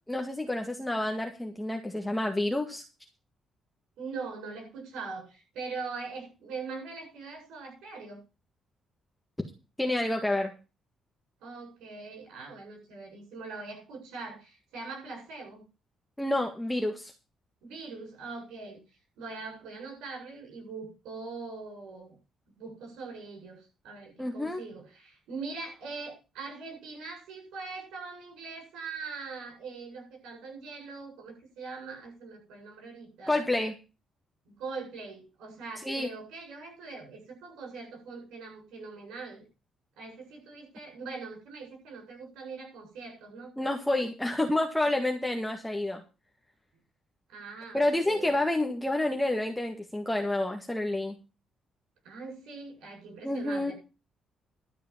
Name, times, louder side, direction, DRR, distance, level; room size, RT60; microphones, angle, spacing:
voice 1, 0.1-2.8 9.8-10.5 16.2-17.1 24.2-24.6 33.3-33.7 35.8-36.1 43.6-46.0 47.7-51.2 53.2-53.7, left 1 dB, 5° left, 2 dB, 1.8 m, -29 dB
voice 2, 4.0-8.2 11.4-15.7 17.6-18.8 19.2-22.2 22.6-33.4 34.5-39.5 40.0-43.5 47.3-48.4 52.0-53.7, right 4 dB, 90° right, 2 dB, 7.8 m, -42 dB
12.5 x 6.5 x 7.3 m, 0.32 s
cardioid pair, 90°, 0 cm